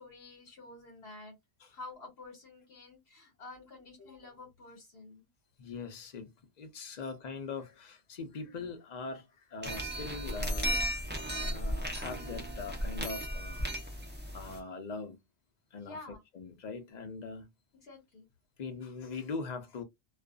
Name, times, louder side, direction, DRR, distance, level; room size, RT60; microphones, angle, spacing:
voice 1, 0.0-1.4 1.7-5.3 8.3-8.5 11.3-11.5 15.8-16.2 17.8-18.3, left 2 dB, 70° left, 1.3 m, -50 dB
voice 2, 5.6-6.3 6.6-9.2 9.5-11.0 11.3-13.7 14.3-15.2 15.7-16.0 16.3-17.5 18.6-19.8, left 4 dB, 45° left, 0.7 m, -41 dB
sound 1, 9.6-14.6, equal, 15° right, 0.4 m, -35 dB
2.4 x 2.4 x 2.3 m
omnidirectional pair, 1.1 m